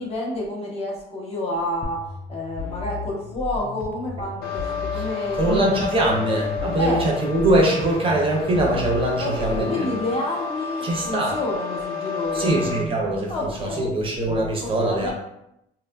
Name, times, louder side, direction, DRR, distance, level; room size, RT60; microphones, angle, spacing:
voice 1, 0.0-2.0 2.3-5.8 6.8-7.0 9.2-12.5 13.3-13.9 14.6-15.1, left 1 dB, 35° left, -3 dB, 0.9 m, -29 dB
sound 1, 1.8-9.8, left 3 dB, 10° left, 0.4 m, -35 dB
sound 2, 4.4-12.8, left 5 dB, 70° left, 0.5 m, -32 dB
voice 2, 5.4-10.0 10.8-11.4 12.3-15.1, right 1 dB, 35° right, -1 dB, 0.5 m, -22 dB
2.8 x 2.4 x 2.2 m, 0.82 s
cardioid pair, 110°, 17 cm